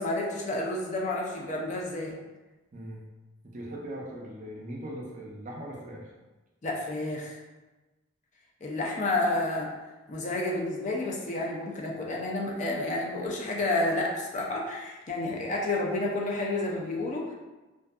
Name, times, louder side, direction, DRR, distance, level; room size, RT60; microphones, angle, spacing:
voice 1, 0.0-2.2 6.6-7.4 8.6-9.7 10.1-17.3, left 2 dB, 35° left, -2 dB, 0.4 m, -30 dB
voice 2, 2.7-3.0 3.5-6.1, right 1 dB, 40° right, -2 dB, 0.4 m, -40 dB
2.5 x 2.4 x 2.2 m, 1.1 s
head